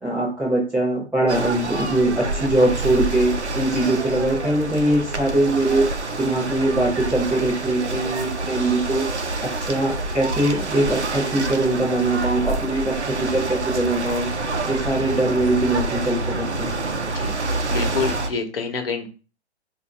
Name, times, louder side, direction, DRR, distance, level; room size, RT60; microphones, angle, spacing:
voice 1, 0.0-5.9 6.2-9.1 9.4-14.3 14.7-16.7, right 2 dB, 5° right, -8 dB, 0.5 m, -22 dB
sound 1, 1.3-18.3, right 2 dB, 80° right, 0.7 m, -27 dB
voice 2, 17.1-19.1, left 5 dB, 60° left, 4 dB, 1.1 m, -28 dB
4.4 x 2.6 x 3.3 m, 0.35 s
figure-of-eight pair, 120°, 33 cm